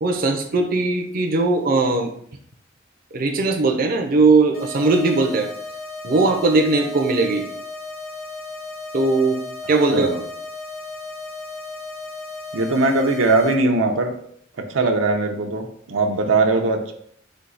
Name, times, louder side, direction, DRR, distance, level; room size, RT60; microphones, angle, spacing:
voice 1, 0.0-2.1 3.1-5.5 6.0-7.4 8.9-9.4 9.7-10.2, right 3 dB, 50° right, 3 dB, 0.5 m, -19 dB
sound 1, 4.5-13.5, left 3 dB, 55° left, 0.9 m, -35 dB
voice 2, 12.5-14.1 14.6-16.9, right 2 dB, 85° right, 3 dB, 0.6 m, -20 dB
4.5 x 2.7 x 3.9 m, 0.65 s
head